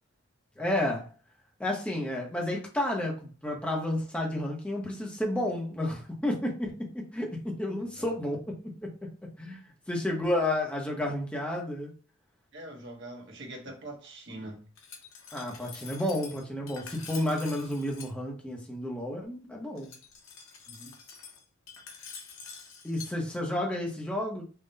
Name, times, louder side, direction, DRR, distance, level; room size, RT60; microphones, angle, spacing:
voice 1, 0.6-1.1 1.6-8.4 9.4-9.6 9.9-11.9 15.3-19.9 22.8-24.4, left 1 dB, 5° left, 0.8 m, -31 dB
voice 2, 12.5-14.7 20.7-20.9, right 1 dB, 60° right, 1.1 m, -43 dB
Glass, 14.8-18.1 19.8-23.1, left 5 dB, 85° left, 0.8 m, -46 dB
3.7 x 2.2 x 3.9 m
head